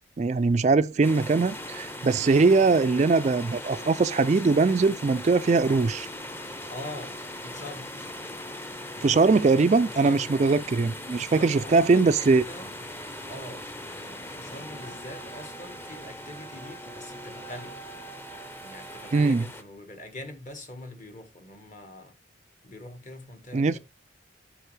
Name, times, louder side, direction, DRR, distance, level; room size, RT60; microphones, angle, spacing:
voice 1, 0.2-6.1 9.0-12.4 19.1-19.4 23.5-23.7, right 4 dB, 35° right, 0.3 m, -21 dB
sound 1, 1.0-19.6, left 1 dB, 10° left, 0.7 m, -40 dB
voice 2, 6.6-8.0 9.8-10.6 11.3-12.7 13.3-17.8 18.6-22.2 22.6-23.8, left 1 dB, 40° left, 1.5 m, -43 dB
sound 2, 14.6-19.6, right 7 dB, 60° left, 2.7 m, -47 dB
8.1 x 6.2 x 3.3 m
head